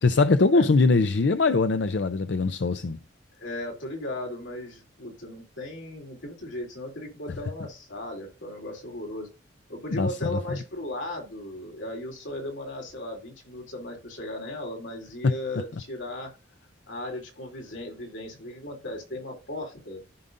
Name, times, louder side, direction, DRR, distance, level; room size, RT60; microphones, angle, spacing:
voice 1, 0.0-3.0 9.9-10.3 15.2-15.3, left 3 dB, 65° left, 0.5 m, -22 dB
voice 2, 3.4-9.3 9.7-16.3 16.9-20.0, left 1 dB, 90° left, 3.1 m, -36 dB
14.5 x 5.4 x 2.6 m
head